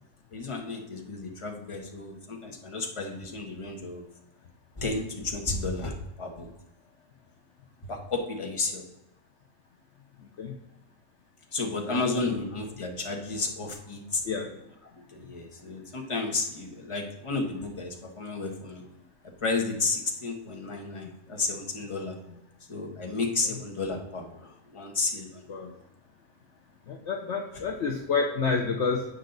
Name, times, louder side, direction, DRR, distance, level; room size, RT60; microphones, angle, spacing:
voice 1, 0.3-4.1 4.8-6.5 7.9-8.8 11.5-14.2 15.0-18.8 19.4-22.2 22.7-25.6, left 3 dB, 20° left, 1 dB, 1.1 m, -32 dB
voice 2, 11.9-12.3 14.2-14.5 21.0-21.1 25.5-25.7 26.9-29.1, left 4 dB, 55° left, 2 dB, 0.9 m, -29 dB
8.3 x 5.5 x 3.9 m, 0.90 s
omnidirectional pair, 1.7 m